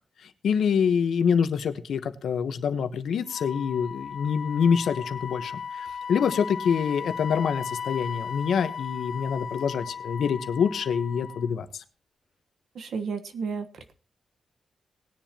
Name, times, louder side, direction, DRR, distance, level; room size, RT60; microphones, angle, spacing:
voice 1, 0.2-11.8, left 7 dB, 70° left, 9 dB, 1.1 m, -26 dB
Wind instrument woodwind instrument, 3.3-11.5, left 6 dB, 50° left, 0.5 m, -36 dB
voice 2, 12.7-13.7, right 5 dB, 60° right, 9 dB, 1.3 m, -31 dB
19.0 x 10.5 x 2.9 m, 0.38 s
wide cardioid pair, 170°, 0 cm